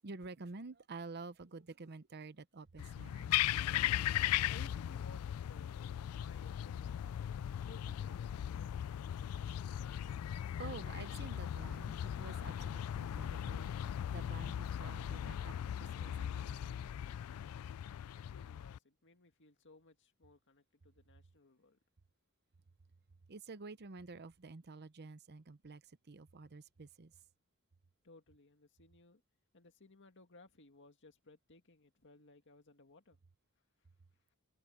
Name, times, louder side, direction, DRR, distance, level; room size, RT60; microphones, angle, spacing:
voice 1, 0.0-3.6 7.9-8.0 10.6-13.7 14.1-16.9 23.3-27.2, right 3 dB, 50° right, 0.8 m, -50 dB
sound 1, 2.8-18.8, left 11 dB, 75° left, 0.3 m, -38 dB
voice 2, 4.5-9.4 18.2-21.8 28.0-29.2 29.5-33.2, left 2 dB, 55° left, 2.0 m, -61 dB
head